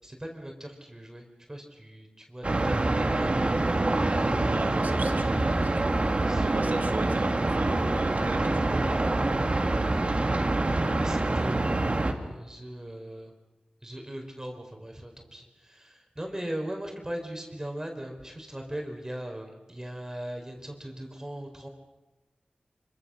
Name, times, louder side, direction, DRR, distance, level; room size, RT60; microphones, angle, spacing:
voice 1, 0.0-3.4 6.2-7.2 9.7-10.3 10.9-13.3 13.8-21.7, right 1 dB, 20° right, 2 dB, 4.6 m, -39 dB
sound 1, 2.4-12.1, right 2 dB, 45° right, 2.7 m, -26 dB
voice 2, 4.5-9.0, right 3 dB, 70° right, 5 dB, 2.5 m, -38 dB
25.5 x 25.5 x 6.5 m, 1.1 s
cardioid pair, 50°, 3 cm